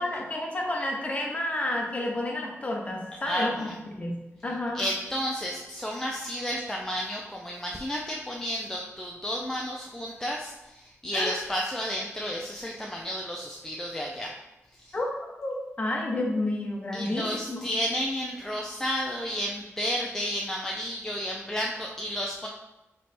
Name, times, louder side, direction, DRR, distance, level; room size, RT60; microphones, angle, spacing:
voice 1, 0.0-3.7 3.9-4.8 11.1-11.4 14.9-15.1 15.4-17.6, left 1 dB, 25° left, -1 dB, 0.8 m, -30 dB
voice 2, 3.3-3.7 4.7-14.3 14.8-14.9 16.9-22.5, equal, 10° left, -2 dB, 0.4 m, -32 dB
3.2 x 3.0 x 4.2 m, 0.99 s
wide cardioid pair, 110°, 5 cm